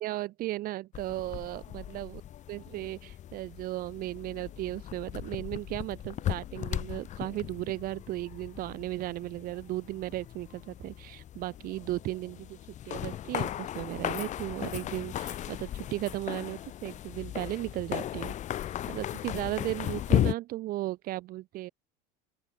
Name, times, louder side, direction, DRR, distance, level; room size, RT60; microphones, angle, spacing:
voice 1, 0.0-2.2 2.5-12.6 12.8-18.4 18.7-21.7, right 16 dB, 45° right, 1.8 m, -36 dB
sound 1, 0.9-20.3, left 11 dB, 35° left, 3.5 m, -36 dB
open air
supercardioid pair, 145°, 21 cm